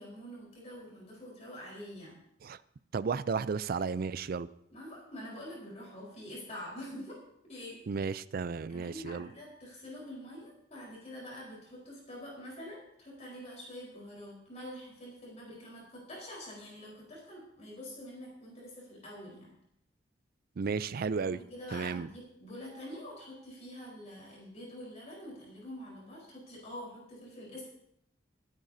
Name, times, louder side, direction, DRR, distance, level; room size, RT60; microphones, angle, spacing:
voice 1, 0.0-2.2 4.7-7.2 7.4-7.8 8.7-19.5 21.2-27.7, equal, 40° left, -4 dB, 4.2 m, -46 dB
voice 2, 2.9-4.5 7.9-9.3 20.6-21.4 21.7-22.1, right 5 dB, 55° right, 16 dB, 0.4 m, -33 dB
25.0 x 9.0 x 2.7 m, 0.76 s
head